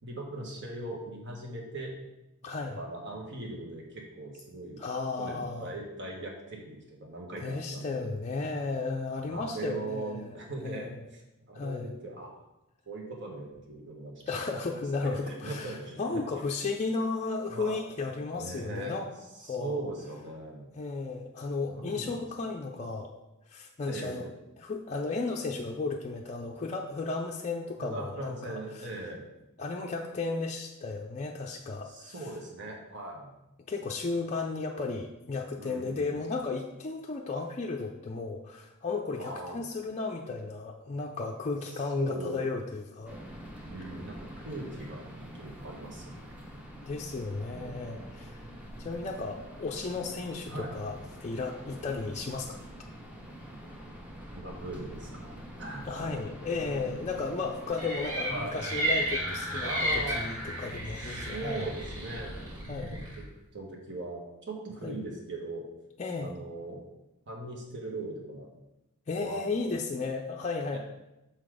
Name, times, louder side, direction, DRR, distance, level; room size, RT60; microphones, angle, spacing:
voice 1, 0.0-1.9 2.8-4.8 5.2-8.1 9.3-11.2 11.5-12.4 12.9-14.2 15.0-16.2 17.5-17.8 18.3-18.9 19.4-20.7 21.7-22.3 23.9-24.3 27.8-29.2 31.8-33.3 35.6-36.2 39.2-39.7 42.0-42.5 43.7-45.1 45.3-46.4 47.5-48.0 50.5-50.7 54.3-55.9 56.7-57.0 58.3-58.5 59.6-60.2 61.0-63.0 63.5-65.7 66.2-66.8 67.3-68.5 69.1-69.7 70.7-70.8, right 2 dB, 55° right, -1 dB, 1.5 m, -40 dB
voice 2, 2.4-2.8 4.8-5.7 7.4-10.3 10.6-11.0 11.5-11.9 14.3-19.1 19.4-19.8 20.7-23.1 23.5-24.2 24.6-28.9 29.6-32.3 33.7-43.2 46.9-52.6 55.9-61.7 62.7-62.9 64.8-65.0 66.0-66.3 69.1-70.8, left 3 dB, 30° left, 0 dB, 0.5 m, -34 dB
sound 1, 43.1-62.6, equal, 5° right, 0.9 m, -45 dB
sound 2, 57.8-63.2, equal, 70° right, 2.1 m, -33 dB
6.4 x 4.0 x 4.9 m, 0.93 s
head